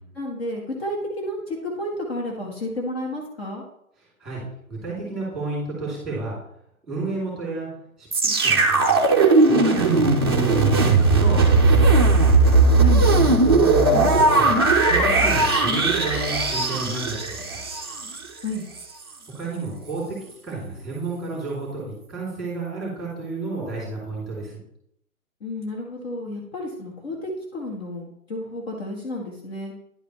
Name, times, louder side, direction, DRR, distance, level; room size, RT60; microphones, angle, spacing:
voice 1, 0.1-3.6 12.8-13.1 18.4-18.6 25.4-29.7, left 1 dB, 45° left, -1 dB, 1.7 m, -31 dB
voice 2, 4.7-6.4 6.8-7.7 8.0-9.0 9.4-12.0 13.4-17.7 19.3-24.6, right 3 dB, ahead, -5 dB, 3.3 m, -31 dB
sound 1, 8.1-18.2 18.8-18.9, right 3 dB, 20° right, 0.4 m, -18 dB
10.5 x 4.9 x 3.3 m, 0.75 s
figure-of-eight pair, 145°, 43 cm